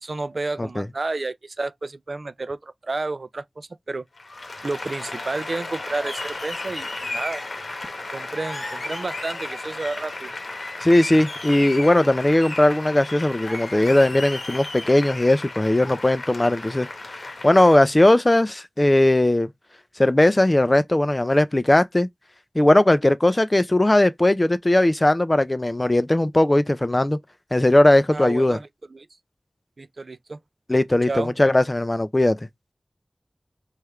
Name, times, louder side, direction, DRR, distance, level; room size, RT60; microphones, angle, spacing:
voice 1, 0.0-4.1 4.6-7.4 8.1-10.3 28.1-29.1 29.8-30.4 31.1-31.3, right 3 dB, 65° right, 0.4 m, -31 dB
Applause, 4.2-17.8, left 2 dB, 70° left, 0.9 m, -34 dB
voice 2, 10.8-16.9 17.4-19.5 20.0-22.1 22.6-27.2 27.5-28.6 30.7-32.4, left 1 dB, 25° left, 0.4 m, -18 dB
3.2 x 2.4 x 4.3 m
wide cardioid pair, 70°, 0 cm